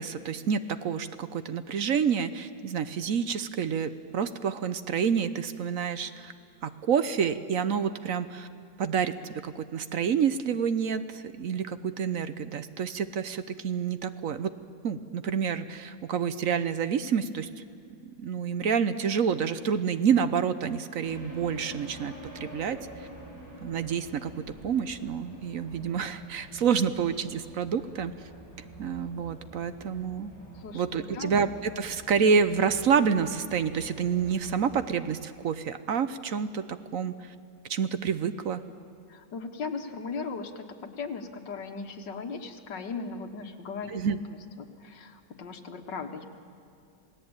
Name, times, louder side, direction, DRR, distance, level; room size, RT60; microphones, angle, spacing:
voice 1, 0.0-6.3 6.6-8.5 8.8-14.5 14.8-17.5 18.0-22.8 23.6-28.1 28.8-30.3 30.7-36.6 36.9-37.1 37.7-38.6 43.9-44.2, right 7 dB, 55° right, 12 dB, 1.1 m, -28 dB
sound 1, 21.0-34.9, right 1 dB, 10° right, 7.7 m, -47 dB
voice 2, 30.5-31.4 39.1-44.0 44.3-46.3, left 4 dB, 75° left, 4 dB, 2.1 m, -38 dB
28.0 x 18.0 x 8.9 m, 2.4 s
omnidirectional pair, 1.9 m